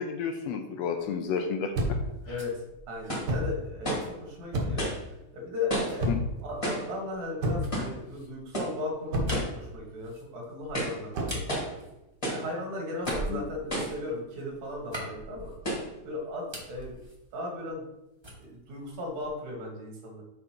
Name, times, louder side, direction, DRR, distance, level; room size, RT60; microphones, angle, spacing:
voice 1, 0.0-2.0 2.3-2.4 6.1-6.2 13.3-13.5, left 6 dB, 80° left, 5 dB, 1.6 m, -31 dB
sound 1, 1.7-2.1 3.2-3.6 4.5-4.9 6.0-6.4 7.4-7.8 9.1-9.5 11.1-11.4, equal, 60° right, 1.1 m, -29 dB
sound 2, 2.0-5.0 5.9-12.5 12.9-16.0 16.3-18.0 18.2-19.5, equal, 25° right, 0.5 m, -46 dB
voice 2, 2.3-4.9 5.3-6.1 6.4-11.6 12.3-15.5 16.0-17.0 17.3-17.8 18.4-20.2, left 2 dB, 80° right, 0 dB, 3.0 m, -36 dB
sound 3, 3.1-3.4 3.8-4.1 4.8-5.0 5.7-6.1 6.6-6.9 7.7-8.0 8.5-8.8 9.3-9.6 10.0-10.1 10.6-11.0 11.5-11.8 12.2-12.5 13.1-13.3 13.7-14.0 14.7-14.8 15.6-15.9, right 1 dB, 20° left, 1.0 m, -32 dB
6.7 x 4.8 x 4.3 m, 0.95 s
omnidirectional pair, 3.3 m